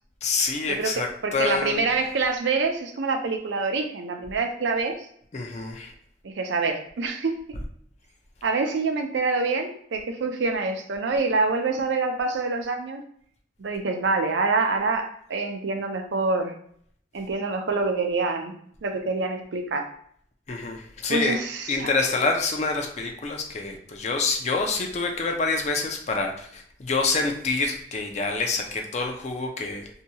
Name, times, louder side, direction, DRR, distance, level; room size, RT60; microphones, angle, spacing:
voice 1, 0.2-1.9 5.3-5.9 20.5-21.4 21.7-29.9, left 3 dB, 40° left, 3 dB, 0.4 m, -27 dB
voice 2, 1.2-4.9 6.2-7.3 8.4-13.0 13.6-16.5 17.1-18.5 18.8-19.9 21.1-21.9, right 3 dB, 85° right, 4 dB, 0.5 m, -26 dB
2.8 x 2.3 x 2.7 m, 0.62 s
head